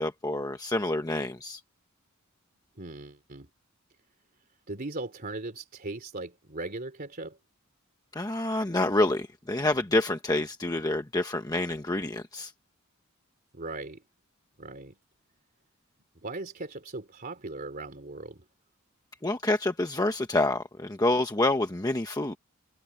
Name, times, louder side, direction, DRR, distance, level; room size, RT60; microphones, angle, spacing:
voice 1, 0.0-1.6 8.1-12.5 19.2-22.4, left 2 dB, 20° left, 1.1 m, -27 dB
voice 2, 2.8-3.5 4.7-7.4 13.5-14.0 14.6-15.0 16.2-18.4, right 2 dB, 45° right, 3.2 m, -38 dB
head